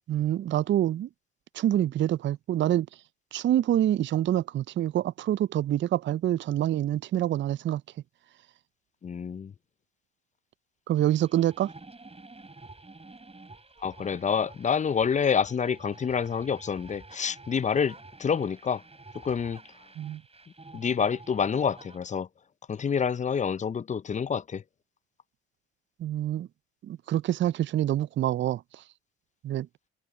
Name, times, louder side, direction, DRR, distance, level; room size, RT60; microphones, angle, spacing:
voice 1, 0.1-1.1 1.6-2.9 3.3-7.8 10.9-11.7 20.0-20.2 26.0-26.5 26.8-28.6 29.4-29.7, right 12 dB, 40° right, 0.4 m, -26 dB
voice 2, 9.0-9.5 13.8-18.8 19.2-19.6 20.7-22.3 22.7-24.6, left 6 dB, 25° left, 0.5 m, -27 dB
sound 1, 11.0-22.0, right 3 dB, 20° right, 6.7 m, -50 dB
hypercardioid pair, 65°, 31 cm